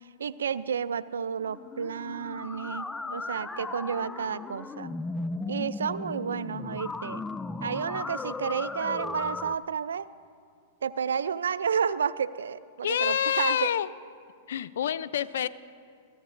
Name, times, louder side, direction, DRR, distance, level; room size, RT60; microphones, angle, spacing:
voice 1, 0.2-5.0 5.5-7.2 7.6-10.1 10.8-13.7, right 7 dB, 90° right, 17 dB, 0.4 m, -31 dB
sound 1, 1.4-9.6, left 3 dB, 10° left, 0.3 m, -36 dB
voice 2, 12.8-13.9 14.5-15.5, left 10 dB, 75° left, 15 dB, 0.4 m, -27 dB
21.5 x 14.0 x 2.6 m, 2.2 s
hypercardioid pair, 120°, 0 cm